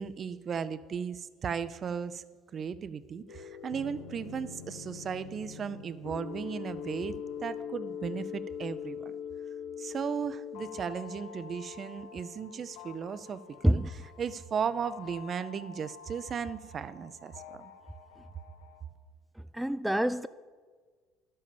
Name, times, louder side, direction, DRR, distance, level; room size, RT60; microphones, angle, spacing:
voice 1, 0.0-2.2 2.5-9.1 9.8-17.7, right 7 dB, 40° right, 0.6 m, -36 dB
sound 1, 3.3-18.8, left 7 dB, 75° left, 1.0 m, -44 dB
voice 2, 19.5-20.3, equal, 5° right, 0.3 m, -26 dB
11.5 x 7.7 x 6.9 m
hypercardioid pair, 70°, 0 cm